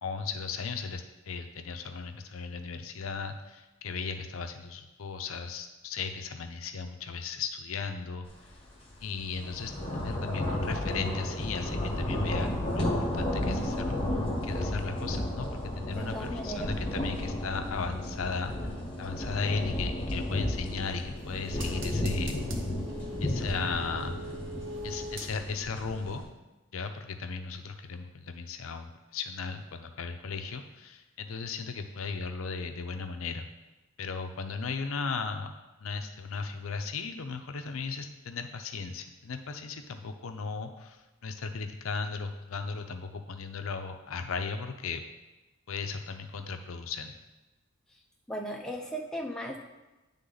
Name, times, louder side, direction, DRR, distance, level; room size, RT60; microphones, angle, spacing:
voice 1, 0.0-8.3 9.0-14.0 14.4-22.4 23.2-24.2 24.8-26.2 26.7-33.5 34.0-35.5 35.8-45.0 45.7-47.1, left 5 dB, 80° left, 7 dB, 0.6 m, -36 dB
sound 1, 8.4-8.6 9.0-26.2, left 1 dB, 25° left, 1.2 m, -33 dB
voice 2, 16.0-16.7 48.3-49.6, right 1 dB, 5° left, -1 dB, 0.6 m, -36 dB
sound 2, 20.6-25.7 26.1-26.2, right 1 dB, 60° right, 0.8 m, -43 dB
9.6 x 3.6 x 3.9 m, 1.1 s
head